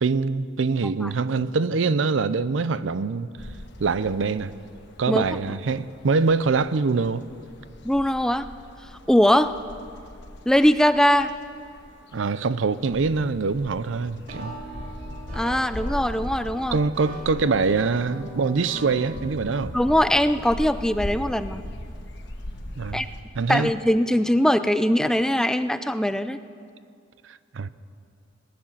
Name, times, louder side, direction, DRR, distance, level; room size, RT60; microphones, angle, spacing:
voice 1, 0.0-3.3 3.8-4.5 5.0-7.2 12.1-14.5 16.7-19.7 22.8-23.0 23.3-23.7 27.3-27.7, right 4 dB, 85° right, 16 dB, 0.5 m, -24 dB
sound 1, 3.4-23.2, left 1 dB, 65° left, 1.3 m, -39 dB
voice 2, 7.8-8.5 9.1-9.5 10.5-11.3 15.3-16.8 19.7-21.6 22.9-23.1 23.5-26.4, equal, 5° left, 11 dB, 0.4 m, -21 dB
sound 2, 14.3-19.6, right 1 dB, 50° right, 3.1 m, -40 dB
18.0 x 10.5 x 7.4 m, 2.3 s
head